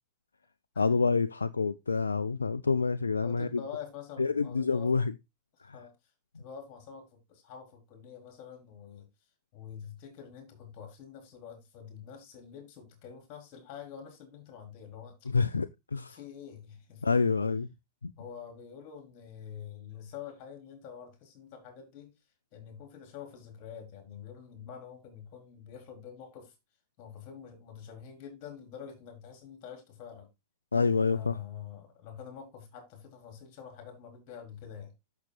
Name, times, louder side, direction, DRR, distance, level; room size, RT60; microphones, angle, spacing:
voice 1, 0.8-3.5 4.2-5.1 5.6-5.8 15.3-16.2 17.0-17.7 18.0-18.1 30.7-31.4, left 4 dB, 75° left, 0.4 m, -27 dB
voice 2, 3.2-4.9 5.7-5.9 6.4-9.1 9.5-15.3 16.1-17.4 18.2-22.1 22.5-26.5 27.0-30.3 31.0-34.9, left 8 dB, 40° left, 4.2 m, -46 dB
11.5 x 6.7 x 2.4 m
figure-of-eight pair, 90°, 0 cm